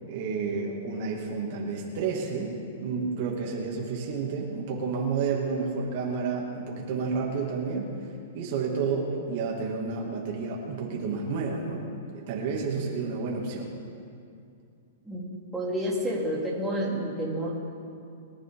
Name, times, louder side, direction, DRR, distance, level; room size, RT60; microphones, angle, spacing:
voice 1, 0.1-2.5 2.8-7.9 8.3-11.8 12.1-13.7, right 5 dB, 50° right, -2 dB, 2.5 m, -30 dB
voice 2, 15.5-17.5, equal, 5° right, -9 dB, 3.9 m, -29 dB
23.5 x 11.5 x 3.9 m, 2.4 s
hypercardioid pair, 150°, 0 cm